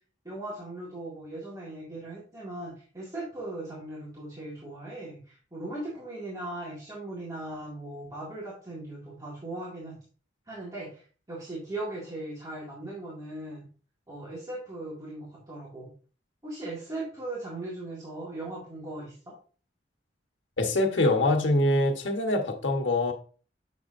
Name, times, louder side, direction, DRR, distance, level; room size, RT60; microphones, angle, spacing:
voice 1, 0.3-9.9 10.5-13.7 14.1-15.9 16.4-19.3, right 2 dB, 20° right, 1.7 m, -38 dB
voice 2, 20.6-23.1, left 1 dB, 90° left, 1.1 m, -24 dB
6.6 x 6.4 x 2.5 m
head